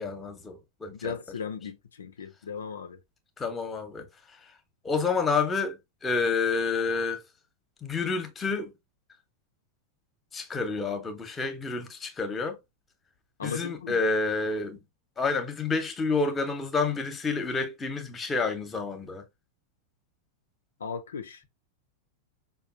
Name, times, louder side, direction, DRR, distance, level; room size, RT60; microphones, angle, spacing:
voice 1, 0.0-1.2 3.4-4.1 4.8-7.2 7.8-8.7 10.3-12.6 13.4-14.8 15.2-19.2, left 4 dB, 15° left, 0.9 m, -29 dB
voice 2, 0.9-3.0 13.4-14.0 20.8-21.4, left 6 dB, 70° left, 0.5 m, -37 dB
5.1 x 2.3 x 2.6 m
figure-of-eight pair, 90°, 0 cm